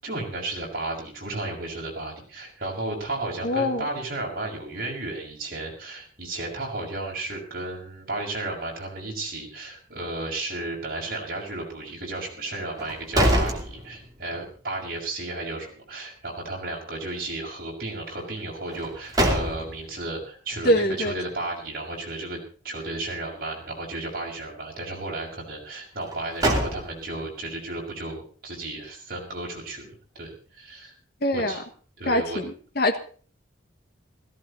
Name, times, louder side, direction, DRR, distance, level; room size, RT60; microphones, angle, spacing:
voice 1, 0.0-22.4 22.6-30.9 31.3-31.6 32.0-32.4, right 2 dB, 45° right, -1 dB, 6.3 m, -33 dB
voice 2, 3.4-3.8 20.6-21.1 31.2-31.6 32.1-33.0, left 1 dB, 50° left, 8 dB, 1.5 m, -23 dB
sound 1, 12.7-14.4 14.8-14.9 18.7-20.0 26.0-27.3, right 1 dB, 20° right, 2.7 m, -25 dB
17.0 x 15.5 x 4.2 m, 0.42 s
head